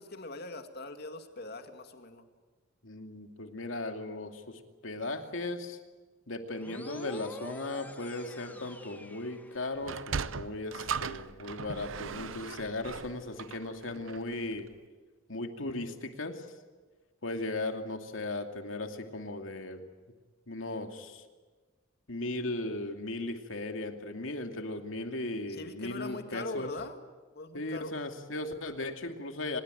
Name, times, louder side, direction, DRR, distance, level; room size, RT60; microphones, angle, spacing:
voice 1, 0.0-2.3 25.5-27.0 27.3-27.9, left 3 dB, 55° left, 6 dB, 2.3 m, -41 dB
voice 2, 2.8-5.8 6.3-14.7 15.3-16.5 17.2-19.8 20.5-21.3 22.1-26.7 27.5-29.6, left 2 dB, 85° left, 5 dB, 2.6 m, -37 dB
sound 1, 6.6-10.1, left 1 dB, 10° left, 1.9 m, -47 dB
Sliding door, 9.8-14.4, right 6 dB, 85° right, 0.7 m, -38 dB
24.5 x 21.0 x 9.2 m, 1.3 s
head